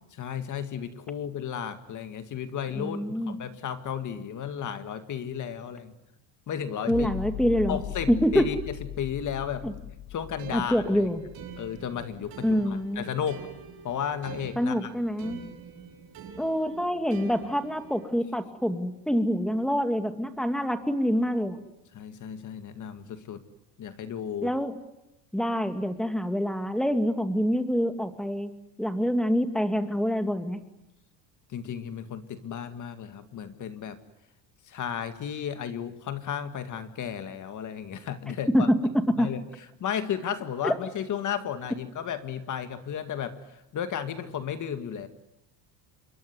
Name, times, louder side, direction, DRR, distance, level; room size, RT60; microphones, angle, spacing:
voice 1, 0.1-3.0 3.3-5.9 6.5-7.1 7.7-9.7 10.1-11.1 11.6-13.4 13.8-14.9 21.9-23.4 23.8-24.5 31.5-34.0 34.7-38.7 39.2-39.4 39.8-43.3 43.7-45.1, left 8 dB, 40° left, 9 dB, 2.0 m, -34 dB
voice 2, 2.7-3.4 6.9-7.8 8.1-8.5 9.6-9.7 10.5-11.2 12.4-13.1 14.6-15.4 16.4-21.6 24.4-24.7 25.3-28.5 28.8-30.6 38.5-38.8 39.2-39.3 40.6-40.7, equal, ahead, 8 dB, 2.2 m, -26 dB
sound 1, 6.9-13.9 14.4-14.5, left 13 dB, 65° left, 2.0 m, -40 dB
sound 2, 10.4-18.1, right 7 dB, 50° right, 6.0 m, -45 dB
27.5 x 23.0 x 9.5 m, 0.88 s
cardioid pair, 140°, 45 cm